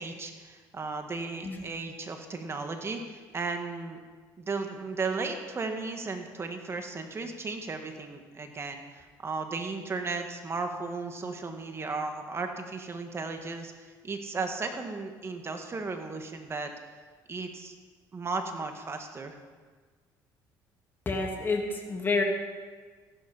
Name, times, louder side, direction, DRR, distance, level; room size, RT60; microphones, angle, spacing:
voice 1, 0.0-4.0 4.4-16.7 17.3-17.7 18.1-19.4, right 4 dB, 30° right, 5 dB, 1.8 m, -35 dB
voice 2, 21.0-22.2, left 3 dB, 25° left, 1 dB, 2.8 m, -29 dB
15.0 x 11.5 x 5.7 m, 1.5 s
cardioid pair, 95°, 8 cm